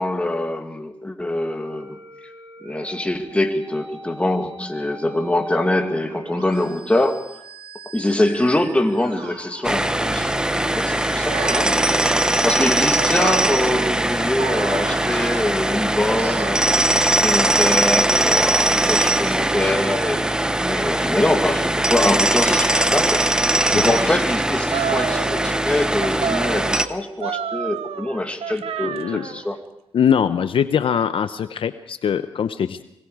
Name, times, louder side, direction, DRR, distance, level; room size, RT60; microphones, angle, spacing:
voice 1, 0.0-2.0 2.6-7.2 7.9-10.3 10.7-11.8 12.4-23.2 23.7-29.6, left 1 dB, 10° left, 4 dB, 2.3 m, -24 dB
Musical instrument, 1.6-14.7, right 3 dB, 60° right, 4.6 m, -41 dB
sound 1, 9.6-26.9, right 1 dB, 10° right, 1.0 m, -20 dB
sound 2, 11.3-15.8 16.2-17.7 18.3-19.2 19.6-20.6 21.2-24.1 24.7-25.7 26.0-29.5, right 9 dB, 85° right, 0.8 m, -32 dB
voice 2, 28.8-29.3 29.9-32.8, left 8 dB, 65° left, 11 dB, 0.8 m, -22 dB
25.5 x 20.5 x 4.9 m, 0.82 s
cardioid pair, 95°, 10 cm